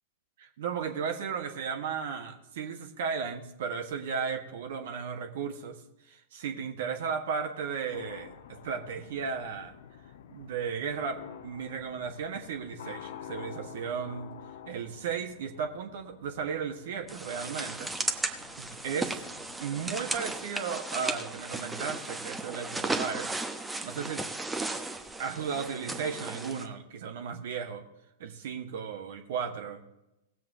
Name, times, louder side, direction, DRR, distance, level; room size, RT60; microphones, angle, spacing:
voice 1, 0.4-5.7 6.1-9.7 10.3-14.3 14.7-18.2 18.6-19.2 19.6-23.3 23.8-24.2 25.2-27.8 28.2-29.8, right 6 dB, 55° right, 5 dB, 1.4 m, -35 dB
sound 1, 7.9-19.6, left 9 dB, 60° left, 0.7 m, -48 dB
sound 2, 17.1-26.7, right 2 dB, 10° right, 1.0 m, -35 dB
18.5 x 7.6 x 3.8 m, 0.90 s
figure-of-eight pair, 100°, 0 cm